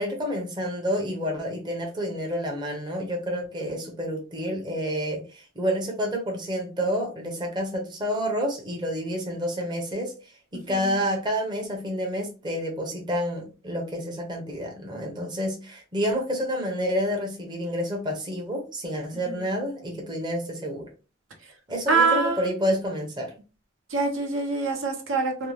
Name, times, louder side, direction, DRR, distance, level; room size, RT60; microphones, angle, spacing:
voice 1, 0.0-10.2 10.5-20.9 21.7-23.3, equal, 25° right, 1 dB, 0.6 m, -29 dB
voice 2, 10.5-10.9 19.3-19.5 21.9-22.7 23.9-25.5, right 4 dB, 85° right, 3 dB, 0.8 m, -25 dB
2.7 x 2.1 x 3.0 m, 0.32 s
head